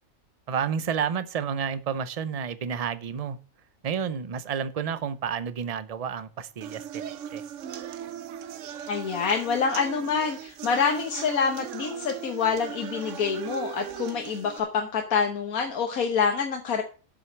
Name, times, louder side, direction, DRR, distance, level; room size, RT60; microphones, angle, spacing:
voice 1, 0.5-3.4 3.8-7.4, right 7 dB, 40° right, 0.5 m, -30 dB
sound 1, 6.6-14.6, right 9 dB, 65° right, 1.0 m, -38 dB
voice 2, 8.9-16.8, left 6 dB, 85° left, 1.6 m, -26 dB
7.8 x 6.3 x 7.1 m
omnidirectional pair, 1.5 m